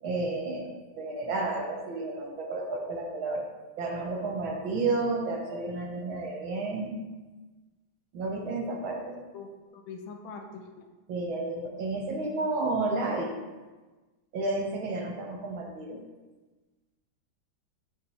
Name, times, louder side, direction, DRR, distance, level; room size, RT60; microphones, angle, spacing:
voice 1, 0.0-3.4 3.8-6.9 8.1-9.2 11.1-13.3 14.3-16.0, right 3 dB, 70° right, 1 dB, 1.9 m, -31 dB
voice 2, 9.3-10.9, left 4 dB, 75° left, 4 dB, 1.5 m, -43 dB
8.1 x 5.7 x 3.2 m, 1.2 s
omnidirectional pair, 2.3 m